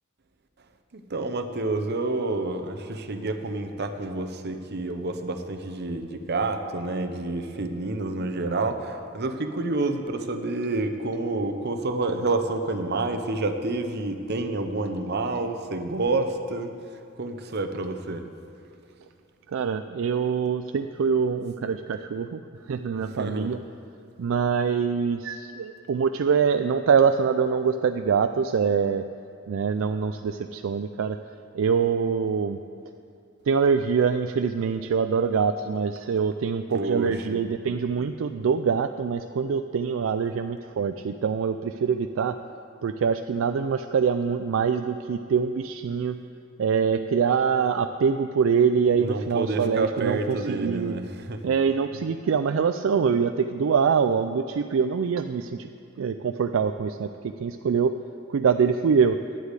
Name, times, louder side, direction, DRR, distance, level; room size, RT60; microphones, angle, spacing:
voice 1, 0.9-16.7 17.2-18.3 23.0-23.5 36.7-37.4 49.0-51.4, right 2 dB, 55° right, 7 dB, 0.8 m, -29 dB
voice 2, 19.5-22.4 22.7-23.6 24.2-29.1 29.5-31.2 31.5-32.6 33.5-42.4 42.8-46.2 46.6-50.9 51.4-55.7 56.0-58.0 58.3-59.2, right 6 dB, 70° right, 8 dB, 0.4 m, -24 dB
10.0 x 8.1 x 8.2 m, 2.5 s
head